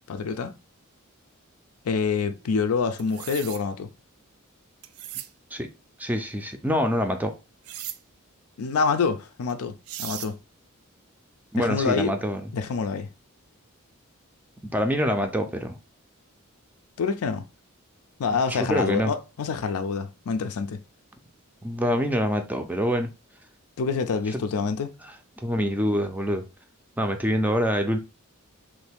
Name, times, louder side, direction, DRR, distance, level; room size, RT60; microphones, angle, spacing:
voice 1, 0.1-0.5 1.8-3.9 8.6-10.4 11.6-12.1 12.5-13.1 17.0-17.4 18.2-20.8 23.8-24.9, left 5 dB, 85° left, 0.4 m, -26 dB
sound 1, 3.0-3.6 4.8-5.3 7.6-8.0 9.5-9.6 9.9-10.3, right 12 dB, 80° right, 0.3 m, -37 dB
voice 2, 6.0-7.3 11.5-12.5 14.7-15.8 18.5-19.1 21.6-23.1 24.3-24.7 25.4-26.4 27.0-28.0, equal, 10° right, 0.4 m, -25 dB
3.1 x 2.6 x 3.4 m
head